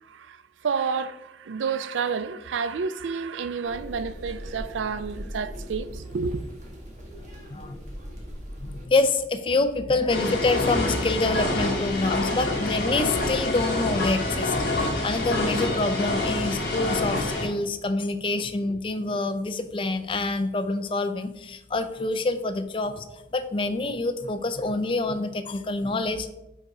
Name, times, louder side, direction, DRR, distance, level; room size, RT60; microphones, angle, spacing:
voice 1, 0.0-6.4, right 5 dB, 85° right, 0.4 m, -30 dB
sound 1, 3.6-8.8, equal, 40° right, 1.4 m, -39 dB
voice 2, 8.6-23.0 23.3-26.3, left 2 dB, 30° left, 0.4 m, -26 dB
sound 2, 10.1-17.5, left 2 dB, 55° left, 1.8 m, -26 dB
5.4 x 5.2 x 4.7 m
head